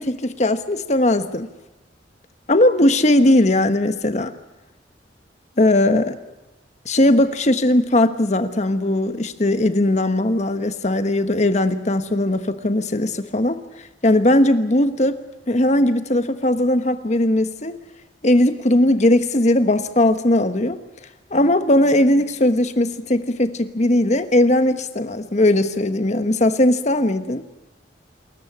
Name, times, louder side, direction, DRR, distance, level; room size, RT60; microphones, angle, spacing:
voice 1, 0.0-1.5 2.5-4.3 5.6-6.2 6.8-13.6 14.0-15.2 15.5-17.7 18.2-20.8 21.3-27.4, left 1 dB, 40° left, 1.2 m, -18 dB
27.0 x 14.5 x 9.8 m
head